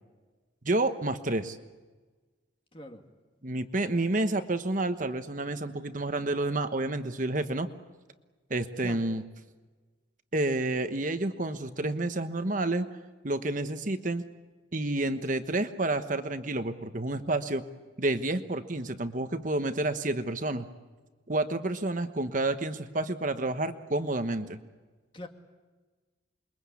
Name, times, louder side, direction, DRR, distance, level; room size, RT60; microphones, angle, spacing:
voice 1, 0.6-1.6 3.4-7.7 8.5-9.2 10.3-12.9 13.2-14.2 14.7-17.6 18.0-20.7 21.3-24.6, right 2 dB, 40° right, 8 dB, 1.2 m, -29 dB
voice 2, 2.7-3.0 8.8-9.0 25.1-25.3, left 1 dB, 25° left, 4 dB, 2.3 m, -42 dB
28.0 x 22.5 x 8.5 m, 1.3 s
head